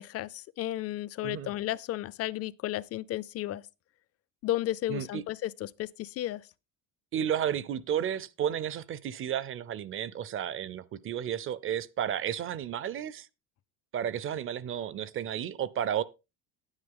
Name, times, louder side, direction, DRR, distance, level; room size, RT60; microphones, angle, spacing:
voice 1, 0.0-3.6 4.4-6.5, left 14 dB, 40° left, 0.5 m, -33 dB
voice 2, 4.9-5.2 7.1-13.3 13.9-16.0, right 9 dB, 35° right, 0.5 m, -32 dB
10.0 x 9.7 x 3.7 m
cardioid pair, 150°, 37 cm